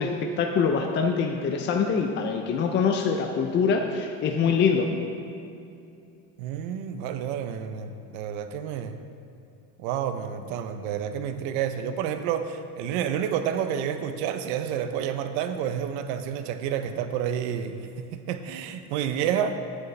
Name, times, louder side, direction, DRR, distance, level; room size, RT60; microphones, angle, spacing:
voice 1, 0.0-4.9, left 5 dB, 30° left, 4 dB, 0.5 m, -24 dB
voice 2, 6.4-9.0 9.8-19.6, right 9 dB, 80° right, 9 dB, 0.8 m, -29 dB
9.8 x 8.2 x 3.3 m, 2.6 s
cardioid pair, 140°, 40 cm